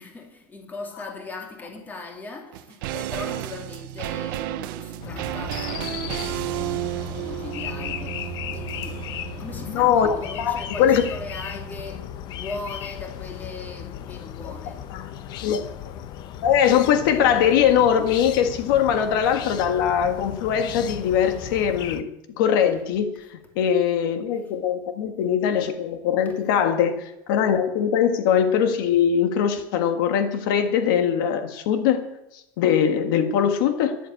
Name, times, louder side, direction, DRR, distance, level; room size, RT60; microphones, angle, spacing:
voice 1, 0.0-9.0 9.4-14.8, left 3 dB, 15° left, 3 dB, 2.6 m, -39 dB
sound 1, 2.5-11.9 12.2-12.3, right 14 dB, 75° right, 0.9 m, -33 dB
sound 2, 5.0-22.0, left 10 dB, 40° left, 0.8 m, -36 dB
voice 2, 9.7-11.0 14.9-15.1 15.4-15.7 16.4-22.1 22.4-23.2 23.5-32.1 32.6-34.0, left 8 dB, 70° left, 7 dB, 1.7 m, -21 dB
13.5 x 11.0 x 8.4 m, 0.86 s
cardioid pair, 170°, 12 cm